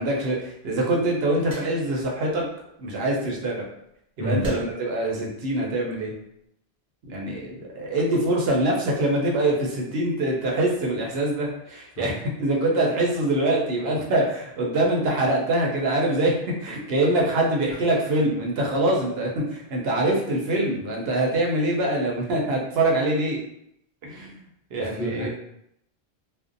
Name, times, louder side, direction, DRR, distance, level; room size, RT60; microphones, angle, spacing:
voice 1, 0.0-2.5 2.8-3.7 4.2-6.1 7.1-23.4 24.0-24.4 24.7-25.3, right 1 dB, 75° right, -2 dB, 0.8 m, -24 dB
sound 1, 1.5-2.0 3.2-3.5 4.4-4.9 5.9-6.2, right 1 dB, 45° right, 0.8 m, -38 dB
voice 2, 4.2-4.5 12.0-12.1 24.8-25.3, left 1 dB, 55° left, -3 dB, 0.7 m, -29 dB
2.5 x 2.1 x 2.5 m, 0.76 s
omnidirectional pair, 1.1 m